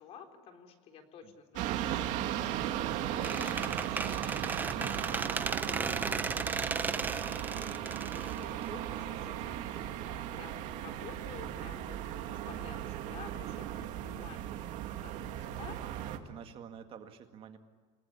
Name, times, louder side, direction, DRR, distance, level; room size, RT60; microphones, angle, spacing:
voice 1, 0.0-14.6 15.0-15.8, left 6 dB, 45° left, 4 dB, 4.0 m, -52 dB
sound 1, 1.5-16.2, right 11 dB, 55° right, 2.4 m, -37 dB
Squeak, 3.2-9.0, right 4 dB, 10° right, 0.8 m, -35 dB
voice 2, 12.5-12.9 15.8-17.6, right 8 dB, 40° right, 6 dB, 2.0 m, -49 dB
28.5 x 19.5 x 9.9 m, 1.5 s
cardioid pair, 155°, 15 cm